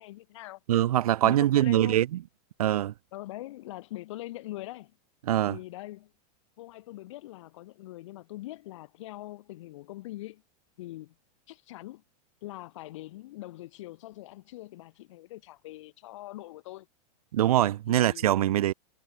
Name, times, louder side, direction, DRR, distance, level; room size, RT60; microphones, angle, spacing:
voice 1, 0.0-0.6 1.2-2.0 3.1-5.0 5.5-6.1 6.6-10.4 10.8-11.1 11.5-12.0 12.4-16.9 17.9-18.3, left 17 dB, 50° left, 3.6 m, -42 dB
voice 2, 0.7-2.2 2.6-2.9 5.3-5.6 17.3-18.7, right 13 dB, 70° right, 2.8 m, -23 dB
supercardioid pair, 175°, 20 cm